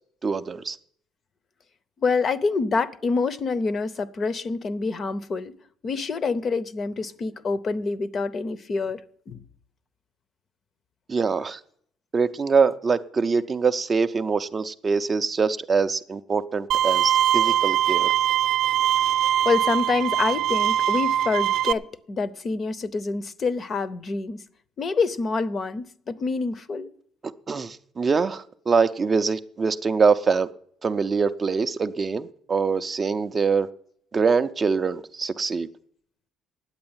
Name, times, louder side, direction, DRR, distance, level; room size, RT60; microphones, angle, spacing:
voice 1, 0.2-0.8 11.1-11.6 12.1-18.1 27.5-30.5 30.8-33.7 34.1-35.7, right 5 dB, 20° right, 0.4 m, -24 dB
voice 2, 2.0-5.5 5.8-9.0 9.3-9.4 19.4-24.4 24.8-26.9, left 4 dB, 30° left, 0.6 m, -26 dB
Bowed string instrument, 16.7-21.7, right 10 dB, 75° right, 0.5 m, -22 dB
9.6 x 8.4 x 8.8 m
cardioid pair, 165°, 0 cm